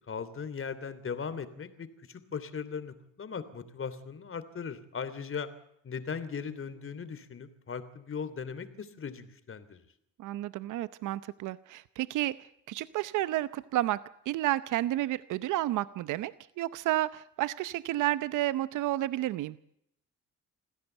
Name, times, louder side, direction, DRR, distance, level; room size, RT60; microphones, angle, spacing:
voice 1, 0.1-5.5 5.8-9.8, left 6 dB, 45° left, 12 dB, 3.1 m, -38 dB
voice 2, 10.2-12.4 12.7-14.0 14.3-19.6, right 15 dB, 85° right, 15 dB, 0.8 m, -31 dB
27.0 x 16.0 x 8.1 m, 0.76 s
cardioid pair, 90°, 30 cm